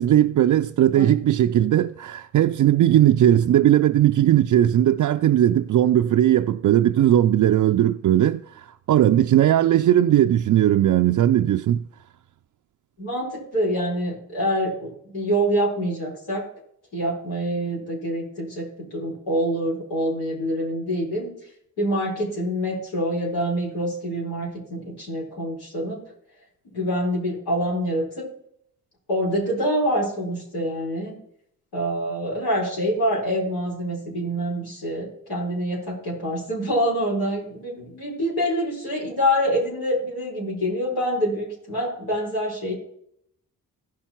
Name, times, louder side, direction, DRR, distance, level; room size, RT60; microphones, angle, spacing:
voice 1, 0.0-11.8, right 12 dB, 55° right, 0.4 m, -18 dB
voice 2, 13.0-16.5 16.9-21.3 21.8-26.0 26.6-28.3 29.1-31.2 31.7-42.7, equal, 85° left, 4.7 m, -26 dB
15.0 x 5.8 x 4.5 m
supercardioid pair, 55°, 37 cm